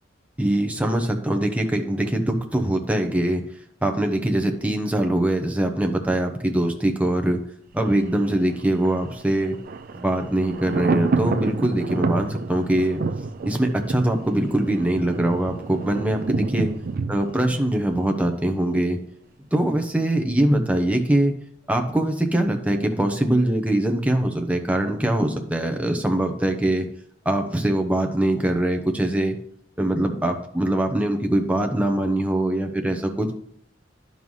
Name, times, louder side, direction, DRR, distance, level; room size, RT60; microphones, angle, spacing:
voice 1, 0.4-3.4 3.8-7.4 7.7-9.6 9.9-13.0 13.4-16.7 17.1-19.0 19.5-21.3 21.7-26.8 27.2-29.4 29.8-33.3, right 1 dB, 10° right, 3 dB, 0.8 m, -22 dB
Thunder, 7.8-18.7 19.0-19.1, right 4 dB, 50° right, 0.4 m, -29 dB
11.0 x 5.4 x 3.2 m, 0.67 s
head